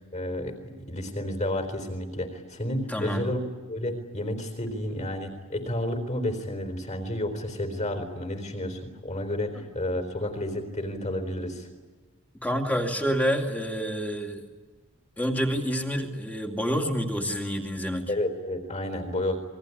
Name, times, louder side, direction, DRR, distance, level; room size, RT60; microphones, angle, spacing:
voice 1, 0.1-11.7 18.1-19.4, left 1 dB, 30° left, 8 dB, 4.1 m, -31 dB
voice 2, 2.9-3.3 9.5-9.6 12.4-14.4 15.2-18.0, equal, 5° left, 2 dB, 2.5 m, -28 dB
28.0 x 21.5 x 9.9 m, 1.3 s
head